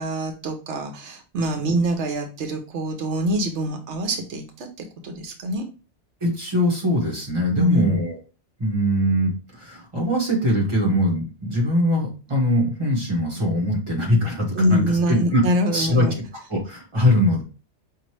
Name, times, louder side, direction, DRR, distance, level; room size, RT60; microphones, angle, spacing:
voice 1, 0.0-5.7 7.6-8.0 14.5-16.2, equal, 85° right, 4 dB, 1.0 m, -24 dB
voice 2, 6.2-8.2 8.6-15.4 15.7-16.1 16.5-17.4, equal, 25° right, -3 dB, 1.5 m, -22 dB
5.1 x 2.6 x 3.1 m, 0.33 s
omnidirectional pair, 1.2 m